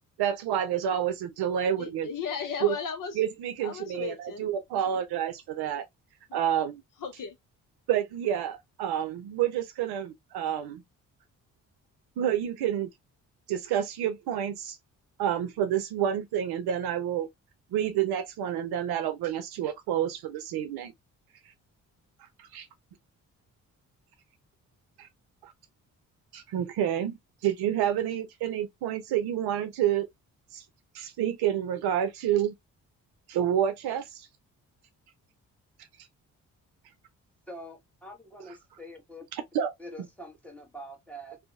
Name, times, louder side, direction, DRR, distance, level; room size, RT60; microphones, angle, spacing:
voice 1, 0.2-2.1 2.6-2.7 3.2-5.9 6.3-6.8 7.9-10.8 12.2-12.9 13.5-14.8 15.2-17.3 17.7-20.9 22.4-22.7 25.0-25.1 25.4-25.5 26.3-30.1 30.5-30.6 30.9-32.5 33.3-34.3 39.5-39.7, right 10 dB, 75° right, 0.7 m, -29 dB
voice 2, 1.8-3.2 3.6-5.0 6.3-6.4 7.0-7.4, left 6 dB, 55° left, 0.8 m, -36 dB
voice 3, 37.5-39.2 39.8-41.4, equal, 5° left, 1.2 m, -45 dB
2.7 x 2.2 x 2.5 m
hypercardioid pair, 45°, 39 cm